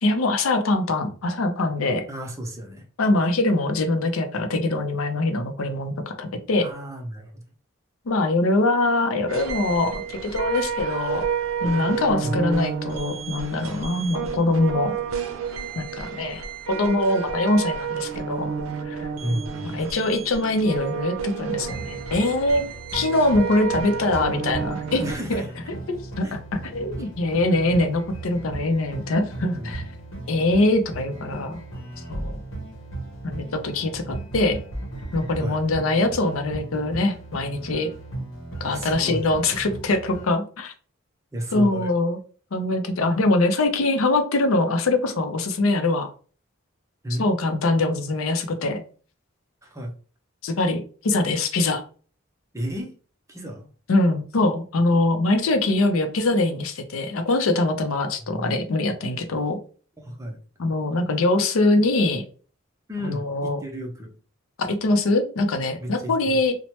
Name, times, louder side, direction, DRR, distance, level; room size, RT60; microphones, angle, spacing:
voice 1, 0.0-2.1 3.0-6.6 8.1-11.3 11.6-14.9 15.8-18.6 18.8-19.1 19.6-22.6 22.9-25.0 25.3-25.4 26.2-29.8 30.3-31.6 32.1-32.4 33.2-34.6 35.1-37.9 38.6-40.7 41.5-42.2 42.5-46.1 47.2-48.8 50.4-51.8 53.9-59.6 60.6-62.2 63.0-63.6 64.6-66.5, left 2 dB, 90° left, 7 dB, 0.5 m, -23 dB
voice 2, 2.1-2.9 6.6-7.4 12.2-12.4 19.2-19.8 25.0-25.5 26.2-26.3 27.0-27.1 29.5-29.8 35.4-35.6 38.6-39.3 41.3-41.9 47.0-47.2 49.6-49.9 52.5-52.9 53.3-53.7 58.2-58.6 60.0-60.4 62.9-64.1 65.8-66.4, equal, 15° right, 2 dB, 0.6 m, -32 dB
sound 1, 9.3-25.2, right 6 dB, 85° right, 0.5 m, -30 dB
sound 2, 21.7-40.3, right 2 dB, 75° left, 0.9 m, -37 dB
3.1 x 2.1 x 2.8 m, 0.40 s
head